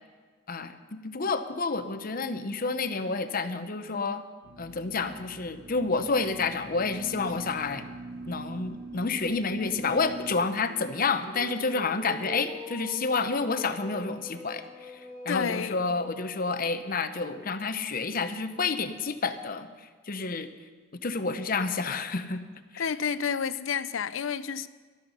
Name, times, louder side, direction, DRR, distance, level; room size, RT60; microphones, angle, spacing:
voice 1, 0.5-4.2 4.6-7.8 8.3-15.0 15.2-19.7 20.1-20.5 21.0-22.4 22.7-22.8, left 4 dB, 45° left, 10 dB, 0.8 m, -29 dB
sound 1, 4.4-10.3, right 2 dB, 60° right, 0.9 m, -42 dB
sound 2, 4.8-5.2 5.6-5.7 6.1-6.2 8.3-16.3, left 1 dB, 15° right, 3.6 m, -45 dB
voice 2, 15.3-15.8 22.8-24.7, left 6 dB, 75° left, 15 dB, 0.5 m, -30 dB
14.0 x 12.0 x 5.6 m, 1.5 s
head